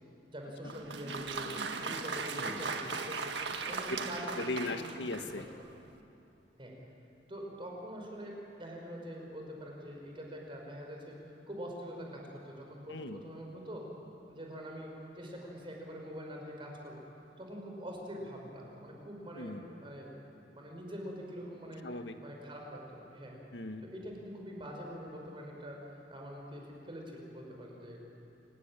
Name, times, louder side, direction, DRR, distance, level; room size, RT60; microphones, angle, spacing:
voice 1, 0.3-1.5 1.8-4.9 5.4-5.5 6.6-6.8 7.3-11.2 11.5-13.8 14.3-17.0 17.4-20.1 20.5-21.8 22.2-23.4 23.8-28.0, equal, 30° right, 0 dB, 5.3 m, -44 dB
Applause, 0.6-5.5, right 4 dB, 85° right, 1.7 m, -38 dB
voice 2, 2.3-2.6 4.4-5.4 12.9-13.2 19.3-19.6 21.8-22.2 23.5-23.8, left 2 dB, 80° left, 7 dB, 1.6 m, -38 dB
29.0 x 16.0 x 10.0 m, 2.8 s
head